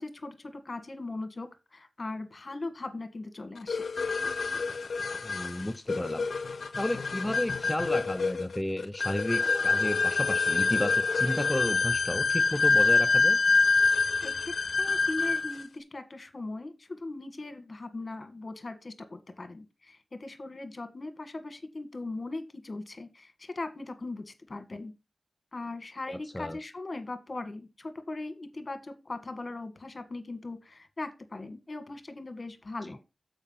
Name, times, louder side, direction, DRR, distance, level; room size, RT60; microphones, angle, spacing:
voice 1, 0.0-3.9 14.2-24.9 25.5-33.0, left 2 dB, 50° left, 1.6 m, -39 dB
sound 1, 3.7-15.6, left 4 dB, 85° left, 0.5 m, -26 dB
voice 2, 5.2-6.3 6.8-13.4 26.1-26.6 32.8-33.0, left 1 dB, 15° left, 0.5 m, -32 dB
7.2 x 5.1 x 5.5 m
wide cardioid pair, 65°, 0 cm